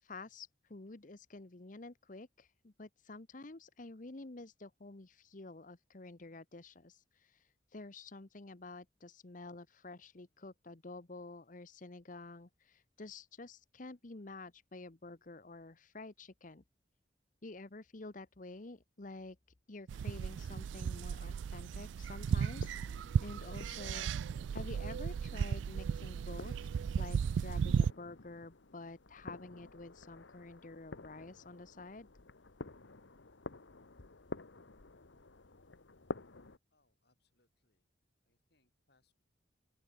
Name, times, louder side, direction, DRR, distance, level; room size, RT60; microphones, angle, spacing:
voice 1, 0.0-16.6 17.4-19.4 19.7-32.1, left 2 dB, 45° left, 1.0 m, -50 dB
sound 1, 19.9-27.9, right 7 dB, 80° right, 0.3 m, -35 dB
sound 2, 21.5-36.6, left 3 dB, 85° left, 1.3 m, -51 dB
voice 2, 36.7-37.9 38.2-39.1, left 3 dB, 60° left, 4.6 m, -78 dB
open air
head